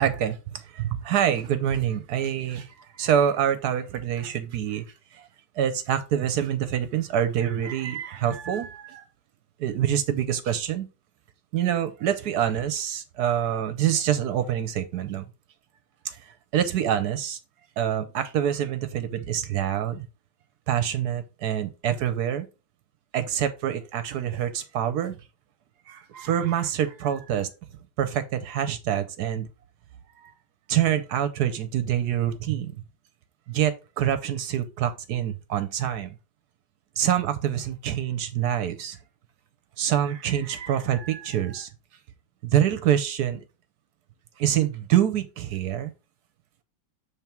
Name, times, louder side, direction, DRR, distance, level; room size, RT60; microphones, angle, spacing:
voice 1, 0.0-4.8 5.1-5.2 5.6-9.0 9.6-10.9 11.5-15.2 16.0-16.2 16.5-17.4 17.8-20.1 20.7-22.5 23.1-25.2 25.9-27.5 28.0-29.5 30.2-30.3 30.7-32.8 33.5-36.1 37.0-39.0 39.8-41.7 42.4-43.4 44.4-45.9, right 10 dB, 65° right, 1.1 m, -26 dB
7.2 x 3.5 x 4.4 m
omnidirectional pair, 2.0 m